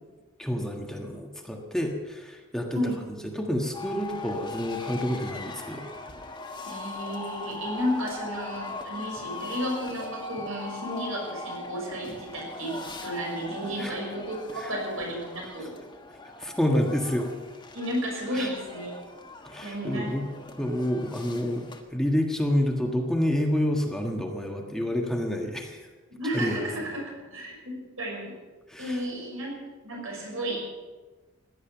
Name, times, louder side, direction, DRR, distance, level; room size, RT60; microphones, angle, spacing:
voice 1, 0.4-2.8 3.2-5.9 13.8-13.9 14.6-14.7 16.4-17.3 18.3-18.5 19.4-20.3 20.6-25.8 26.3-26.9 28.7-29.0, equal, 5° left, 1 dB, 1.5 m, -28 dB
sound 1, 3.7-21.8, left 3 dB, 20° left, 1.5 m, -40 dB
voice 2, 6.6-15.8 17.7-18.9 19.6-20.4 26.1-28.4 28.8-29.5 29.8-30.6, equal, 80° right, -1 dB, 6.2 m, -33 dB
16.5 x 11.0 x 7.1 m, 1.3 s
head